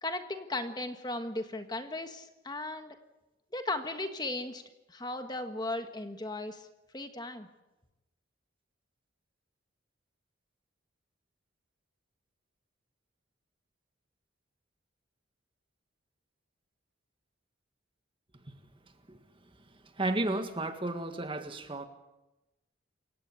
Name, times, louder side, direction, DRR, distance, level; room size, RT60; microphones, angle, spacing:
voice 1, 0.0-2.9 3.5-4.6 4.9-6.7 6.9-7.5, left 2 dB, 20° left, 7 dB, 1.4 m, -36 dB
voice 2, 20.0-21.9, right 2 dB, 25° right, 7 dB, 1.7 m, -32 dB
28.5 x 16.5 x 8.3 m, 1.0 s
head